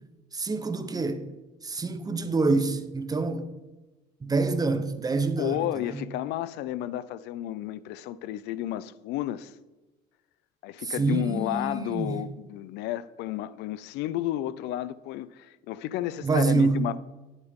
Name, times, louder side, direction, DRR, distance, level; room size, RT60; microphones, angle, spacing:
voice 1, 0.3-1.3 1.6-3.5 4.2-6.0 10.8-12.2 16.2-16.8, right 3 dB, 20° right, 0.9 m, -26 dB
voice 2, 5.4-9.6 10.6-17.0, left 13 dB, 85° left, 0.4 m, -32 dB
10.0 x 8.0 x 3.6 m
cardioid pair, 110°, 17 cm